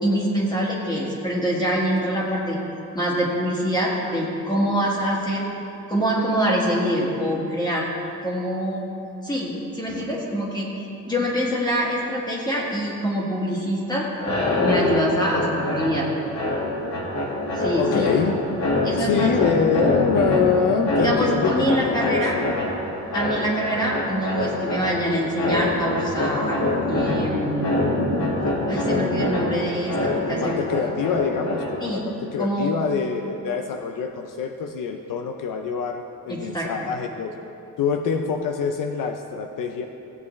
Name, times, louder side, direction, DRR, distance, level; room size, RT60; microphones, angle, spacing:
voice 1, 0.0-2.6 2.9-5.4 5.9-7.9 8.2-8.8 9.2-14.1 14.6-16.1 17.5-18.1 18.8-19.3 21.0-22.4 23.1-26.6 26.9-27.9 28.7-30.6 31.8-32.0 32.4-32.7 36.3-36.9, equal, 10° left, -4 dB, 1.8 m, -25 dB
sound 1, 14.1-32.0, left 2 dB, 55° left, 1.8 m, -25 dB
voice 2, 17.8-18.6 19.0-22.5 30.3-37.3 37.8-39.8, left 6 dB, 75° left, 4 dB, 0.6 m, -25 dB
16.0 x 8.1 x 3.2 m, 2.8 s
wide cardioid pair, 155°, 33 cm